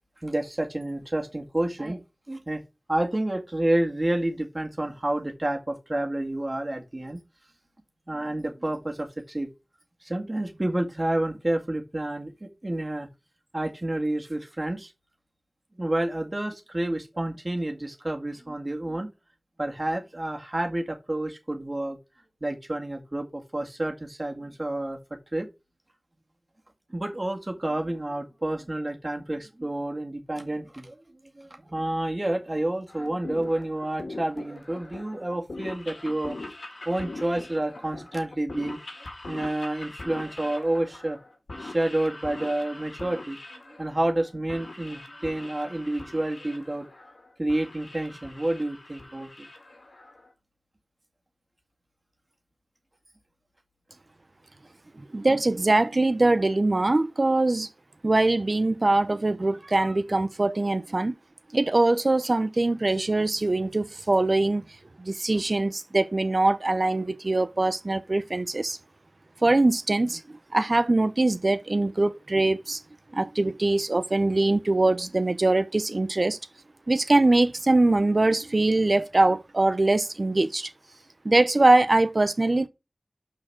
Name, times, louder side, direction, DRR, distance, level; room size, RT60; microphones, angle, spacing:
voice 1, 0.2-2.0 2.3-2.6 2.9-7.2 8.1-9.5 10.0-13.1 13.5-14.9 15.8-19.1 19.6-22.0 22.4-25.5 26.9-31.0 31.4-36.4 36.9-38.8 39.3-41.2 41.5-43.4 43.8-46.9 47.4-49.5, right 1 dB, 40° right, 2.0 m, -29 dB
sound 1, 32.9-50.3, left 2 dB, 90° left, 2.0 m, -42 dB
voice 2, 55.1-57.7 58.0-61.1 61.5-64.6 65.0-68.8 69.4-70.2 70.5-72.8 73.1-76.4 76.9-80.7 81.2-82.7, right 2 dB, 55° right, 0.8 m, -22 dB
6.1 x 4.7 x 6.1 m
wide cardioid pair, 45°, 0 cm